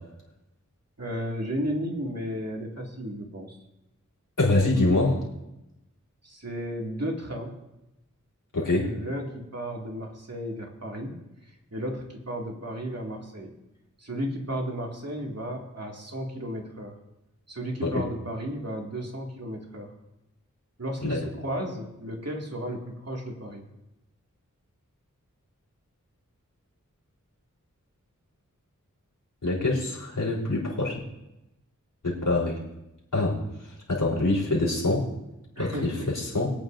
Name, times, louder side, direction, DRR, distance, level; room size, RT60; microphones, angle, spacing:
voice 1, 1.0-3.6 6.2-7.5 8.8-11.2 11.7-13.5 14.0-16.9 17.5-19.9 20.8-23.7 35.6-36.1, equal, 50° right, 0 dB, 2.2 m, -34 dB
voice 2, 4.4-5.2 8.5-8.9 17.8-17.9 21.0-21.2 29.4-31.0 32.0-32.6 33.1-33.4 33.9-35.0 35.6-36.5, left 2 dB, 85° left, -5 dB, 3.7 m, -25 dB
23.0 x 8.8 x 2.6 m, 0.91 s
wide cardioid pair, 55°, 31 cm